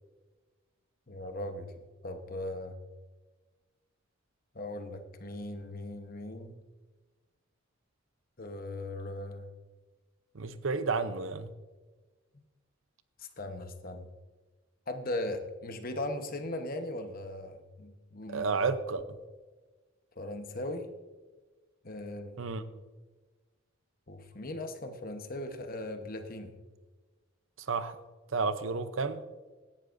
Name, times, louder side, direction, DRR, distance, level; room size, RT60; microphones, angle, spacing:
voice 1, 1.1-2.8 4.5-6.5 8.4-9.5 12.3-12.4 13.2-14.1 14.9-18.5 20.2-20.9 21.8-22.4 24.1-26.5, left 1 dB, 45° left, 7 dB, 1.1 m, -38 dB
voice 2, 10.3-11.5 18.3-19.2 22.4-22.6 27.7-28.0 28.3-29.2, right 4 dB, 70° right, 12 dB, 0.7 m, -31 dB
16.5 x 11.5 x 2.6 m, 1.3 s
head